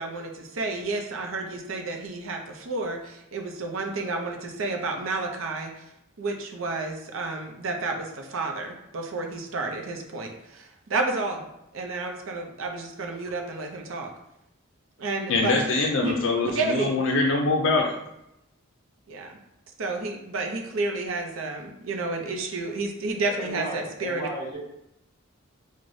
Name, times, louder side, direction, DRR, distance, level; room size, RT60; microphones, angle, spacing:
voice 1, 0.0-5.8 6.2-11.4 11.7-14.1 15.0-15.6 16.0-17.0 19.1-19.4 19.8-24.3, right 3 dB, 75° right, 2 dB, 0.6 m, -31 dB
voice 2, 15.3-17.9, left 3 dB, 65° left, 0 dB, 0.4 m, -23 dB
voice 3, 23.2-24.6, right 1 dB, 15° left, -6 dB, 1.2 m, -34 dB
4.7 x 2.1 x 2.6 m, 0.84 s
head